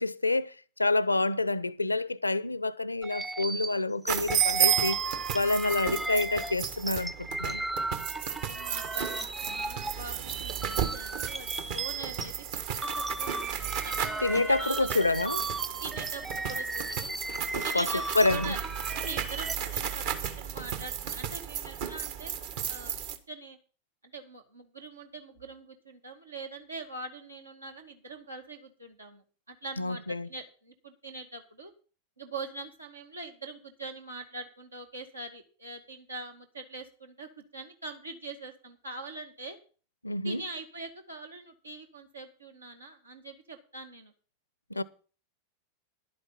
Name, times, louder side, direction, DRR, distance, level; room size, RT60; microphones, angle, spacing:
voice 1, 0.0-5.0 5.3-7.6 14.2-15.4 17.5-17.9 18.1-18.5 29.8-30.3 40.0-40.4 44.7-44.8, left 2 dB, 85° left, 0.6 m, -28 dB
sound 1, 3.0-12.3 12.6-19.6, right 2 dB, 10° right, 0.8 m, -36 dB
sound 2, 4.1-23.2, right 9 dB, 50° right, 1.4 m, -33 dB
voice 2, 8.4-12.4 12.8-14.9 15.8-17.1 17.6-18.6 18.9-20.0 20.4-22.4 22.7-22.9 23.3-23.6 24.0-31.7 32.2-39.6 40.2-44.1 44.7-44.8, right 3 dB, 80° right, 2.2 m, -43 dB
11.5 x 8.6 x 5.7 m
figure-of-eight pair, 90°, 0 cm